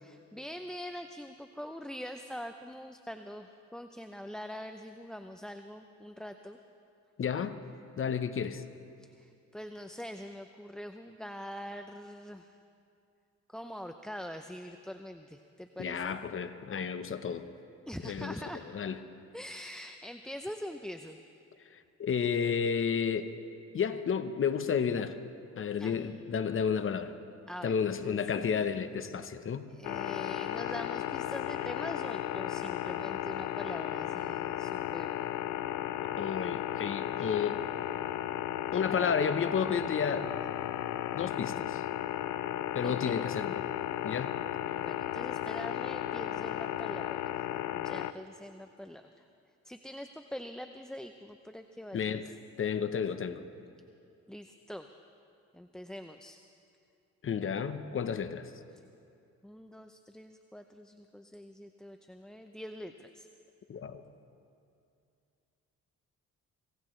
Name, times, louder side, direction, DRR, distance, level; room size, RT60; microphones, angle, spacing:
voice 1, 0.0-6.6 9.0-12.6 13.5-16.2 17.9-18.6 19.3-21.2 25.8-26.1 27.5-28.2 29.7-35.3 42.8-43.2 44.7-47.4 47.7-49.2 49.6-52.2 54.3-54.9 55.5-56.4 58.7-58.8 59.4-63.3, equal, ahead, 7 dB, 0.5 m, -44 dB
voice 2, 7.2-7.6 8.0-8.6 15.8-17.5 18.0-18.4 18.7-19.0 21.7-23.3 23.7-25.2 25.6-27.1 27.6-29.7 36.2-37.6 38.7-40.3 41.1-41.8 42.7-43.6 44.0-44.4 51.9-52.3 52.6-53.4 57.2-58.5 63.7-64.0, left 7 dB, 45° left, 11 dB, 0.9 m, -31 dB
sound 1, 29.8-48.1, left 12 dB, 75° left, 0.5 m, -35 dB
25.0 x 17.0 x 3.2 m, 2.5 s
cardioid pair, 90°, 30 cm